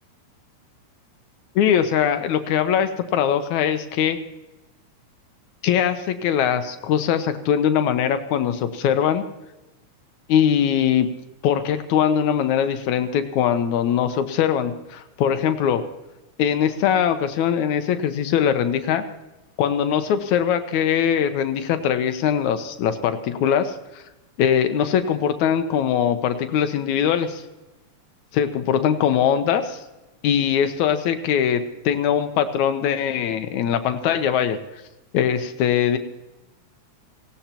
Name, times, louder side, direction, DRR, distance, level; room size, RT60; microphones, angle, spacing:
voice 1, 1.6-4.2 5.6-9.2 10.3-11.1 11.4-15.8 16.4-19.0 19.6-24.0 24.4-27.4 28.3-29.8 30.2-34.6 35.1-36.0, left 8 dB, 80° left, 8 dB, 2.3 m, -21 dB
18.5 x 17.0 x 2.9 m, 1.0 s
omnidirectional pair, 3.3 m